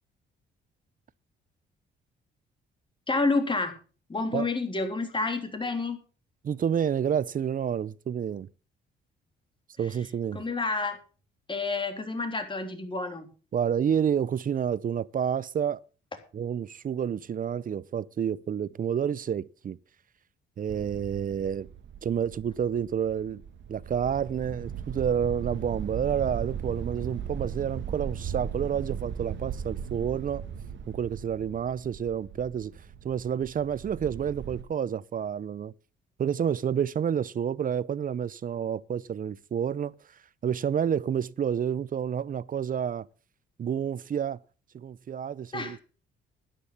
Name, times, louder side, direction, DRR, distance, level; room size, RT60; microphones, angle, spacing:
voice 1, 3.1-3.7 4.1-6.0 10.3-11.0 11.5-13.3 45.5-45.8, left 3 dB, 25° left, 3.3 m, -29 dB
voice 2, 6.4-8.5 9.8-10.4 13.5-15.8 16.3-19.8 20.6-21.7 22.0-23.4 23.7-30.4 30.9-32.7 33.0-35.7 36.2-39.9 40.4-43.1 43.6-44.4 44.7-45.8, right 8 dB, 45° right, 0.7 m, -29 dB
sound 1, 20.7-34.6, right 8 dB, 70° right, 1.9 m, -38 dB
11.5 x 10.5 x 5.7 m
cardioid pair, 90°, 20 cm